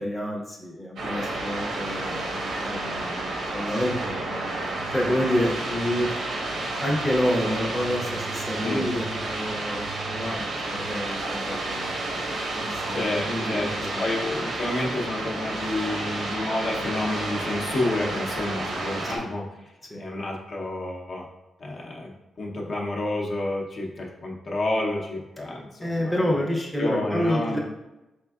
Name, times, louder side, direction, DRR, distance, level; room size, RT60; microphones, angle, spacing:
voice 1, 0.0-6.4 6.8-12.1 12.5-14.0 19.0-19.2 19.9-20.0 25.8-27.6, equal, 5° left, -2 dB, 0.6 m, -29 dB
sound 1, 1.0-19.2, right 2 dB, 80° right, 0.8 m, -31 dB
voice 2, 12.9-13.7 14.0-19.4 20.0-21.3 21.6-22.1 22.4-26.3 26.8-27.6, left 2 dB, 50° left, -2 dB, 0.7 m, -29 dB
4.4 x 3.5 x 2.3 m, 0.99 s
wide cardioid pair, 130°, 0 cm